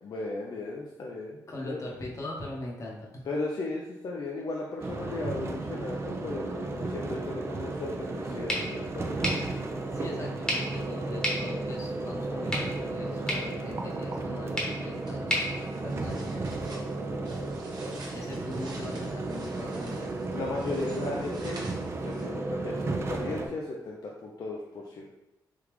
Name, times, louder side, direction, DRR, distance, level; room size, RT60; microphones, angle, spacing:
voice 1, 0.0-1.8 3.3-9.3 17.8-17.9 20.3-21.7 22.0-25.1, left 2 dB, 55° left, -2 dB, 0.5 m, -36 dB
voice 2, 1.5-3.2 9.9-15.5 15.8-16.9 18.1-20.1, left 2 dB, 40° left, -2 dB, 0.9 m, -41 dB
sound 1, 4.8-23.5, right 2 dB, 35° right, 0.5 m, -34 dB
sound 2, 8.5-16.5, equal, 10° left, 1.1 m, -36 dB
sound 3, 15.0-22.5, right 2 dB, 60° right, 0.8 m, -50 dB
3.5 x 2.3 x 3.1 m, 0.92 s
cardioid pair, 75°, 8 cm